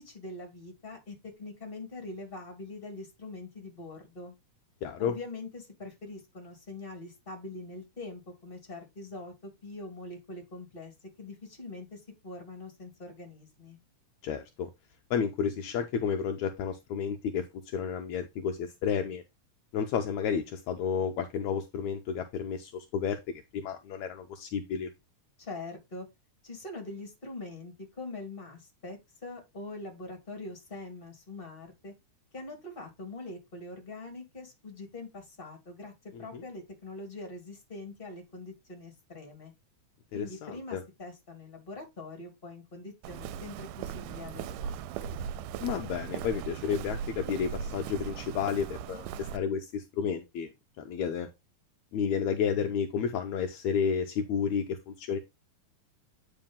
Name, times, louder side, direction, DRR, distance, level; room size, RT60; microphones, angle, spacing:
voice 1, 0.0-4.3 5.0-13.8 25.4-26.1 26.4-31.9 32.3-39.5 40.1-45.2, left 2 dB, 15° left, 2.7 m, -43 dB
voice 2, 4.8-5.2 14.2-14.7 15.1-17.5 17.7-19.2 19.7-23.2 23.5-24.9 36.1-36.4 40.1-40.8 45.6-50.5 50.8-51.3 51.9-55.2, left 7 dB, 75° left, 2.0 m, -31 dB
Walk footsteps, 43.0-49.4, right 8 dB, 90° right, 2.1 m, -38 dB
8.9 x 4.8 x 3.6 m
omnidirectional pair, 3.6 m